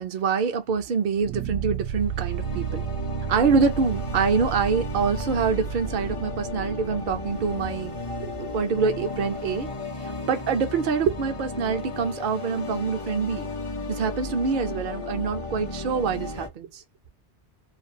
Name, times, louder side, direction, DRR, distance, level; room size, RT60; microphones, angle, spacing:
voice 1, 0.0-2.8 3.3-7.9 8.2-9.7 10.0-13.5 13.9-16.8, right 5 dB, 55° right, 0.7 m, -25 dB
sound 1, 1.2-10.3, right 9 dB, 85° right, 0.9 m, -34 dB
sound 2, 1.9-16.5, left 2 dB, 35° left, 0.6 m, -34 dB
2.5 x 2.3 x 2.6 m
omnidirectional pair, 1.1 m